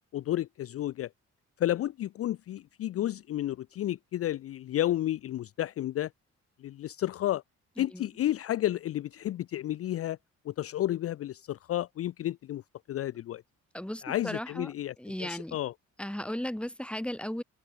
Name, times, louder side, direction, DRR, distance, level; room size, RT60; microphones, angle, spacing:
voice 1, 0.1-1.1 1.6-6.1 6.6-7.4 7.8-10.2 10.5-12.6 12.9-13.4 14.0-14.9 15.2-15.7, left 13 dB, 50° left, 0.5 m, -31 dB
voice 2, 7.8-8.1 13.7-14.7 15.0-15.6 16.0-17.4, left 1 dB, 5° left, 3.8 m, -36 dB
cardioid pair, 90°, 30 cm